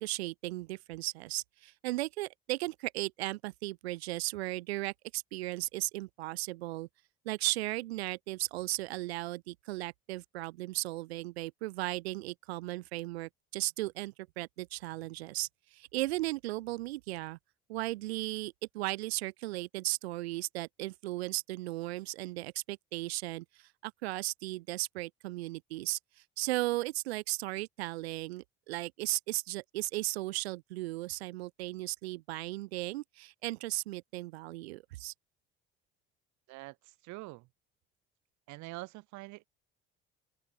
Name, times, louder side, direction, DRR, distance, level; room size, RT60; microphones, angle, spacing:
voice 1, 0.0-6.9 7.3-17.4 17.7-26.0 26.4-35.1, right 19 dB, 85° right, 0.5 m, -36 dB
voice 2, 36.5-37.5 38.5-39.5, right 22 dB, 65° right, 0.9 m, -45 dB
open air
hypercardioid pair, 55°, 31 cm